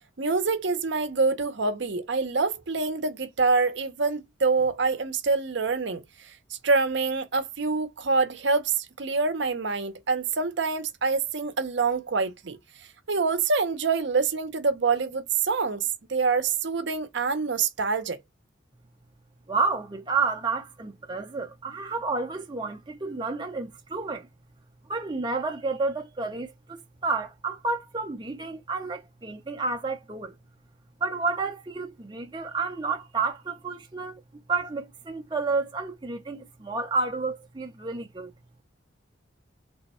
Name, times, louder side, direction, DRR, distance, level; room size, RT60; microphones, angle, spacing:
voice 1, 0.2-12.6 13.1-18.2, right 4 dB, 60° right, 0.7 m, -26 dB
voice 2, 19.5-24.3 24.9-30.3 31.0-34.2 34.5-38.3, right 4 dB, 20° right, 0.5 m, -30 dB
3.4 x 2.2 x 4.1 m
head